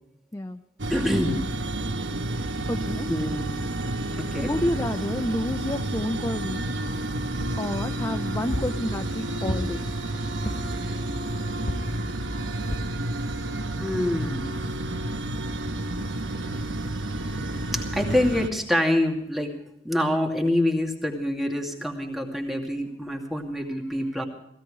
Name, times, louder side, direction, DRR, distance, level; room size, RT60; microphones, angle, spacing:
sound 1, 0.8-18.5, right 1 dB, 80° right, 1.2 m, -30 dB
voice 1, 0.9-1.5 3.1-3.6 4.2-4.5 13.8-14.5 17.7-19.6 19.8-24.2, left 1 dB, ahead, 1 dB, 2.6 m, -26 dB
voice 2, 2.7-3.1 4.4-6.6 7.6-9.9, left 1 dB, 15° left, 7 dB, 0.6 m, -29 dB
sound 2, 7.4-7.7 8.5-8.8 9.5-9.9 10.5-10.8 11.7-12.0 12.7-13.0 13.6-13.7 13.9-14.0, left 1 dB, 50° left, 1.1 m, -32 dB
17.5 x 16.5 x 5.0 m, 0.76 s
head